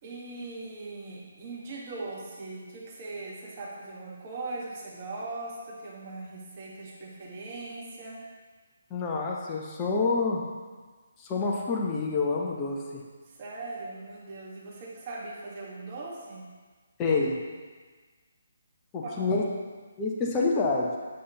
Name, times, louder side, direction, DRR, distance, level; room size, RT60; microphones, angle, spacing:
voice 1, 0.0-8.2 13.2-16.4 19.0-19.3, right 2 dB, 35° right, -4 dB, 1.5 m, -40 dB
voice 2, 8.9-10.4 11.2-13.0 17.0-17.4 18.9-19.4 20.0-21.0, left 3 dB, 20° left, -2 dB, 0.9 m, -27 dB
8.2 x 7.5 x 2.9 m, 1.4 s
figure-of-eight pair, 140°, 0 cm